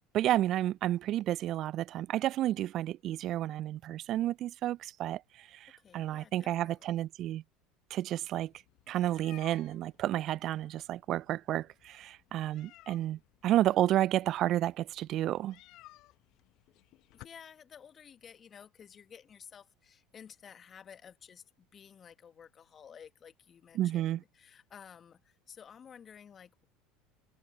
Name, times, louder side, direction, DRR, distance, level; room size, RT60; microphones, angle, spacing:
voice 1, 0.1-7.4 7.9-8.5 8.9-15.6 23.8-24.2, right 13 dB, 50° right, 0.4 m, -31 dB
voice 2, 5.8-7.0 17.1-26.7, left 7 dB, 35° left, 1.9 m, -53 dB
sound 1, 8.3-17.3, left 18 dB, 55° left, 1.4 m, -59 dB
hypercardioid pair, 70°, 0 cm